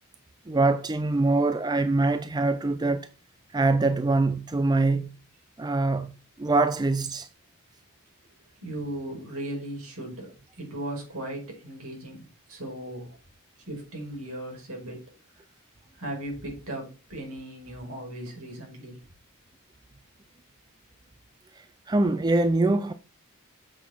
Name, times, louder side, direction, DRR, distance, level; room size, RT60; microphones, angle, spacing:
voice 1, 0.5-3.1 3.5-5.1 5.6-6.1 6.4-7.3 21.9-22.9, right 2 dB, 20° right, 0.5 m, -23 dB
voice 2, 8.6-10.3 10.6-13.2 13.7-15.0 16.0-19.0, right 1 dB, 70° right, 5.1 m, -37 dB
7.4 x 6.2 x 6.0 m
head